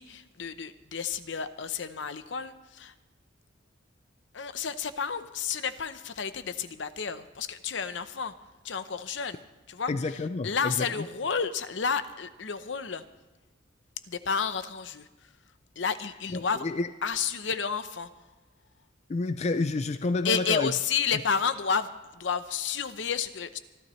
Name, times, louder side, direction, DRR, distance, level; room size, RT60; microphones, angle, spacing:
voice 1, 0.0-2.9 4.3-8.3 8.6-9.4 9.7-13.0 14.1-15.3 15.8-16.6 17.0-18.1 20.2-23.6, left 6 dB, 70° left, 12 dB, 0.8 m, -31 dB
voice 2, 9.9-10.9 16.3-16.9 19.1-20.7, left 3 dB, 35° left, 11 dB, 0.4 m, -29 dB
26.0 x 12.0 x 3.2 m, 1.1 s
head